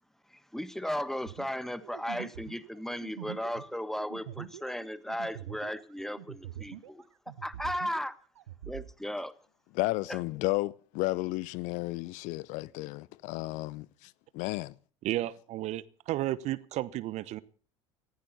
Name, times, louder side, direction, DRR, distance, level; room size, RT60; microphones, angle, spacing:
voice 1, 0.3-7.0 7.4-8.1 8.7-9.3 10.1-10.2, equal, ahead, 1.3 m, -36 dB
sound 1, 1.2-7.0 7.3-8.9, right 12 dB, 70° right, 1.1 m, -44 dB
voice 2, 9.7-14.7, left 20 dB, 55° left, 0.7 m, -33 dB
voice 3, 15.0-17.4, right 15 dB, 50° right, 1.0 m, -33 dB
19.0 x 15.5 x 4.1 m
figure-of-eight pair, 70°, 15 cm